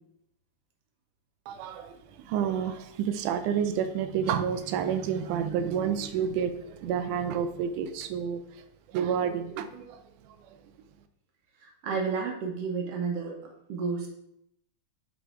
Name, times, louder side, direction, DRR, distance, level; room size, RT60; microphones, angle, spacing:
voice 1, 1.5-8.6 8.9-10.6, right 8 dB, 85° right, 10 dB, 2.1 m, -30 dB
voice 2, 11.6-13.4 13.7-14.1, right 5 dB, 65° right, 1 dB, 1.7 m, -31 dB
6.6 x 4.0 x 4.4 m, 0.76 s
omnidirectional pair, 3.5 m